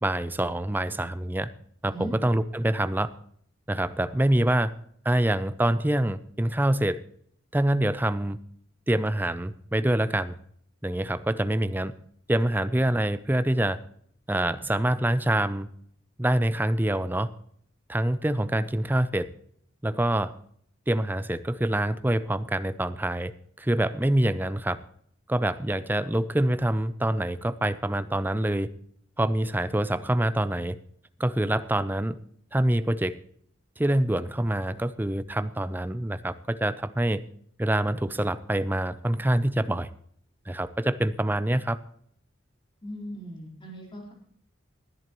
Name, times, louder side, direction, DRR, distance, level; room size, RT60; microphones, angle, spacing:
voice 1, 0.0-1.5 1.8-3.1 3.7-4.7 5.0-7.0 7.5-8.4 8.9-10.4 10.8-11.9 12.3-13.8 14.3-15.7 16.2-17.3 17.9-19.3 19.8-20.3 20.9-24.8 25.3-28.7 29.2-30.8 31.2-32.2 32.5-33.2 33.8-37.2 37.6-39.9 40.5-41.8, right 1 dB, 10° right, 14 dB, 0.5 m, -25 dB
voice 2, 42.8-44.1, equal, 25° left, -2 dB, 4.0 m, -38 dB
19.5 x 10.5 x 3.0 m, 0.64 s
head